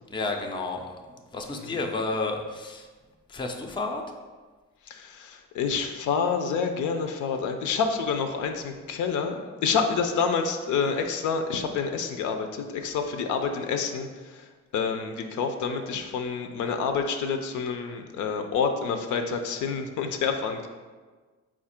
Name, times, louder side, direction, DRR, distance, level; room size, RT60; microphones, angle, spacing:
voice 1, 0.1-1.0 1.3-2.9 3.3-4.0, left 3 dB, 15° left, 3 dB, 0.4 m, -31 dB
voice 2, 4.9-14.4 14.7-20.7, left 5 dB, 75° left, 6 dB, 0.5 m, -28 dB
4.3 x 2.5 x 4.2 m, 1.4 s
cardioid pair, 90°, 30 cm